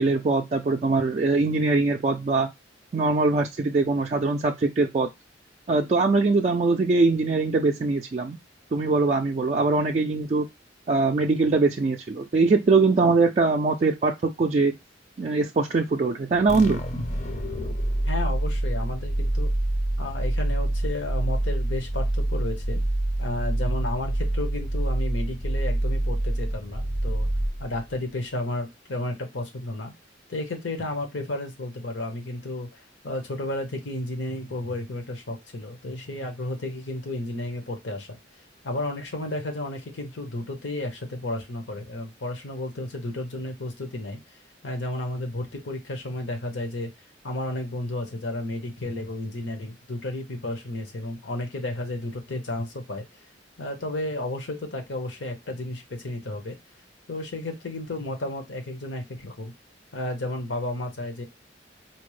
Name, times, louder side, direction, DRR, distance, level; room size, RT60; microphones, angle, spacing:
voice 1, 0.0-2.5 2.9-5.1 5.7-8.4 8.7-10.5 10.9-14.7 15.2-16.8, right 3 dB, 35° right, 1 dB, 0.3 m, -22 dB
sound 1, 16.5-27.9, right 1 dB, 40° left, 0.6 m, -26 dB
voice 2, 18.0-19.5 20.0-22.8 23.2-27.3 27.6-29.9 30.3-38.2 38.6-44.2 44.6-46.9 47.2-53.1 53.6-56.6 57.1-59.5 59.9-61.2, left 1 dB, 70° left, 5 dB, 0.9 m, -32 dB
4.3 x 2.0 x 3.1 m, 0.19 s
head